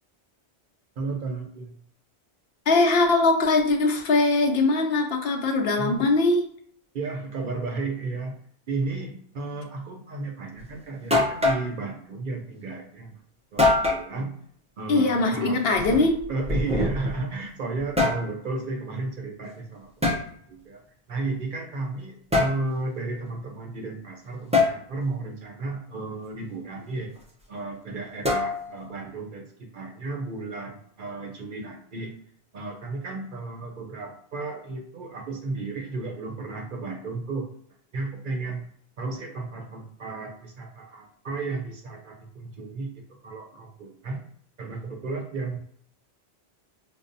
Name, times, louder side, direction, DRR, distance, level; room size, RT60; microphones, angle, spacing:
voice 1, 1.0-1.8 5.8-6.1 6.9-8.4 8.7-13.2 13.5-14.4 14.8-15.8 16.3-20.1 20.5-20.8 21.1-27.1 27.5-32.1 32.5-37.5 37.9-38.6 39.0-44.2 44.6-45.6, right 3 dB, 55° right, 2 dB, 0.7 m, -33 dB
voice 2, 2.7-6.4 14.9-16.2, left 3 dB, 70° left, 3 dB, 0.8 m, -21 dB
sound 1, 10.6-10.7 11.1-11.7 13.6-14.1 15.7-17.2 17.7-18.3 20.0-20.2 22.3-22.6 24.5-24.8 28.2-28.8, left 2 dB, 10° right, 0.4 m, -23 dB
5.2 x 2.0 x 2.6 m, 0.63 s
omnidirectional pair, 1.1 m